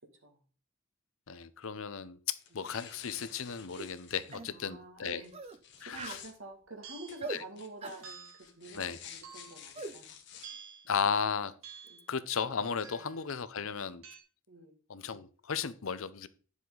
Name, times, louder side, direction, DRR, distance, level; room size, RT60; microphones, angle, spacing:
voice 1, 1.3-5.2 5.8-6.2 7.3-7.4 8.8-9.0 10.9-11.5 12.1-14.0 14.9-16.3, left 6 dB, 75° left, 15 dB, 0.7 m, -35 dB
sound 1, 2.4-4.4 5.2-6.3 7.1-10.5, left 8 dB, 55° left, 1.5 m, -51 dB
sound 2, 3.8-3.9 4.3-4.5 5.3-5.6 5.9-6.3 7.2-7.4 7.8-8.1 9.7-10.0, right 3 dB, 30° right, 0.7 m, -41 dB
voice 2, 4.5-5.3 5.8-10.2 11.9-12.1 14.5-14.8, right 1 dB, 70° right, 3 dB, 2.3 m, -48 dB
sound 3, 6.8-7.2 8.0-8.5 9.2-9.7 10.4-10.9 11.6-12.1 12.8-13.2 14.0-14.2, right 6 dB, 85° right, 2.2 m, -49 dB
10.0 x 7.2 x 3.9 m, 0.40 s
head